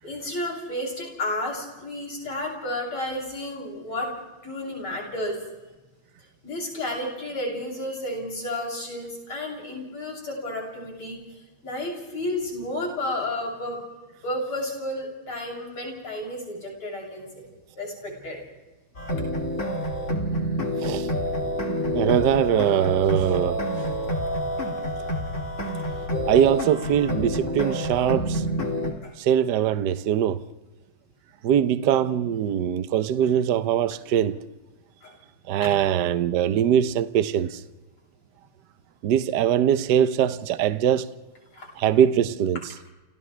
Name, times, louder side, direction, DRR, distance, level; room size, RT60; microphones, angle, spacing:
voice 1, 0.0-4.2 4.4-5.4 6.4-11.2 11.6-13.8 14.2-17.5 17.8-18.4 23.8-23.9 24.5-24.6 29.0-29.1 35.0-35.2 35.6-35.7 41.5-41.7, left 1 dB, 75° left, 8.1 m, -32 dB
sound 1, 18.9-28.9, equal, 35° left, 2.7 m, -27 dB
voice 2, 21.9-23.6 26.3-28.5 29.2-30.4 31.4-34.4 35.5-37.6 39.0-41.1 41.8-42.6, right 9 dB, 60° right, 1.3 m, -22 dB
29.0 x 29.0 x 3.4 m
omnidirectional pair, 2.4 m